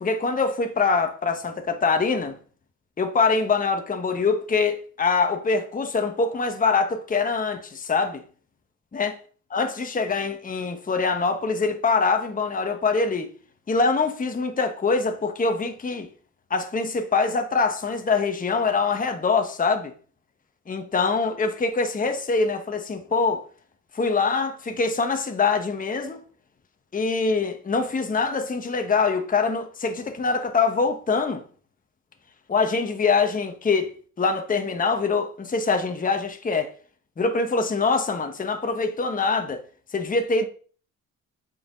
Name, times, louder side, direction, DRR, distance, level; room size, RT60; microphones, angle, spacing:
voice 1, 0.0-2.4 3.0-8.2 8.9-9.2 9.5-13.3 13.7-16.1 16.5-19.9 20.7-23.5 23.9-26.2 26.9-31.4 32.5-33.9 34.2-36.7 37.2-39.6 39.9-40.5, left 4 dB, 25° left, 1.1 m, -24 dB
7.7 x 5.7 x 5.3 m
cardioid pair, 90°, 30 cm